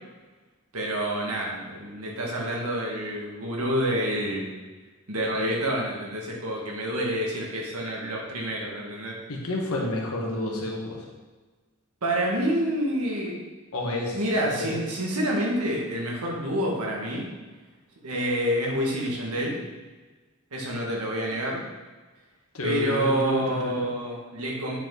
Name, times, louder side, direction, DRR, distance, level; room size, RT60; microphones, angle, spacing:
voice 1, 0.7-4.5 5.1-9.2 12.0-13.4 14.1-17.3 18.0-19.5 20.5-21.6 22.6-24.8, equal, 80° right, -2 dB, 1.9 m, -28 dB
voice 2, 9.3-11.0 13.7-14.8 22.5-23.9, left 1 dB, 70° left, -1 dB, 1.6 m, -30 dB
8.8 x 5.3 x 4.0 m, 1.3 s
head